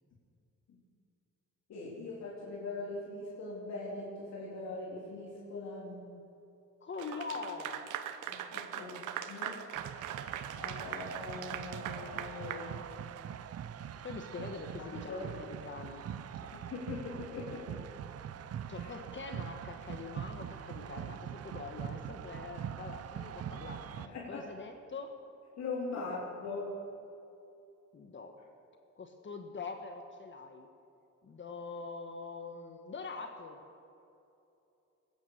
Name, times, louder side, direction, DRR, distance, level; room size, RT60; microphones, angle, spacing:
voice 1, 1.7-6.1 8.3-8.9 9.3-9.6 10.5-12.8 14.8-15.3 16.5-17.8 18.8-18.9 24.0-24.5 25.6-26.8, left 3 dB, 65° left, -5 dB, 3.4 m, -41 dB
voice 2, 6.8-7.8 8.7-9.0 14.0-15.1 15.4-16.1 16.4-16.5 18.7-25.1 26.0-26.1 27.9-28.4 29.0-30.7 31.2-33.6, left 4 dB, 40° left, 5 dB, 1.4 m, -44 dB
Clapping / Applause, 7.0-13.3, right 10 dB, 85° right, 1.0 m, -41 dB
sound 1, 9.7-24.1, right 9 dB, 55° right, 0.7 m, -43 dB
20.5 x 9.6 x 6.7 m, 2.7 s
cardioid pair, 90°, 30 cm